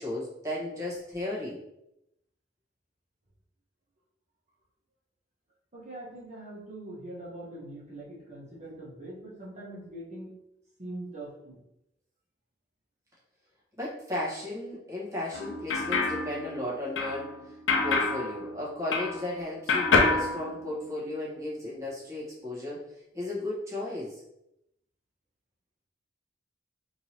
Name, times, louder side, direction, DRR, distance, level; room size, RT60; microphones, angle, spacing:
voice 1, 0.0-1.6 13.8-17.3 17.8-22.8 23.1-24.2, left 1 dB, 15° right, -7 dB, 1.3 m, -35 dB
voice 2, 5.7-10.3 10.8-11.6, right 1 dB, 40° right, -5 dB, 1.3 m, -42 dB
sound 1, 15.3-19.4 19.7-21.2, left 3 dB, 80° left, 0.6 m, -28 dB
3.6 x 3.0 x 2.9 m, 0.84 s
head